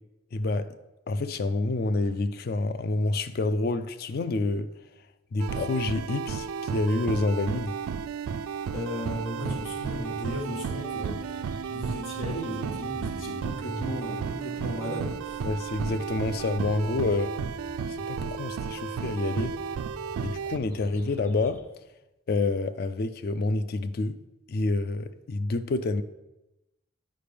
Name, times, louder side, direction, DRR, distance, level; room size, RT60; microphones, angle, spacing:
voice 1, 0.3-0.7 1.1-4.7 5.3-7.8 15.4-17.3 17.9-19.6 20.2-21.6 22.3-24.2 24.5-26.0, left 2 dB, 45° left, 0.3 m, -28 dB
sound 1, 5.4-20.6, right 6 dB, 90° right, 0.3 m, -33 dB
voice 2, 8.7-15.5, equal, 80° left, 1.4 m, -36 dB
sound 2, 9.5-21.6, right 1 dB, 10° left, 0.6 m, -45 dB
8.4 x 5.0 x 3.4 m
head